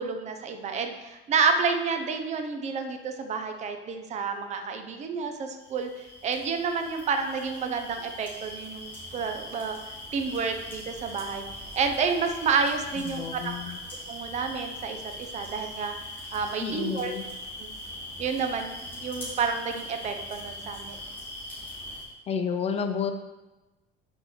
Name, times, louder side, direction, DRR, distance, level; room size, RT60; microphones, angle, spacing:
voice 1, 0.0-9.8 10.1-11.4 11.7-13.5 14.1-15.9 16.3-17.1 17.6-17.7 18.2-21.0, right 5 dB, 35° right, 6 dB, 0.7 m, -29 dB
sound 1, 5.6-22.0, left 1 dB, 10° left, 2.5 m, -41 dB
voice 2, 13.1-13.8 16.6-17.2 22.3-23.1, left 6 dB, 30° left, 8 dB, 0.4 m, -30 dB
6.2 x 4.9 x 6.5 m, 1.1 s
cardioid pair, 175°, 20 cm